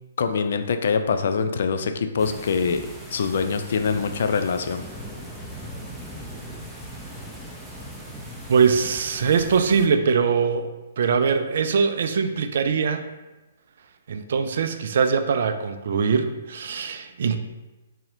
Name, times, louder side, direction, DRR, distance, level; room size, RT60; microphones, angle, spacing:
voice 1, 0.2-4.8, left 5 dB, 60° left, 7 dB, 0.3 m, -24 dB
sound 1, 2.2-9.9, equal, 5° right, 0.5 m, -39 dB
voice 2, 8.5-13.1 14.1-17.4, right 6 dB, 60° right, 8 dB, 0.3 m, -22 dB
4.0 x 2.7 x 2.5 m, 1.1 s
figure-of-eight pair, 130°, 0 cm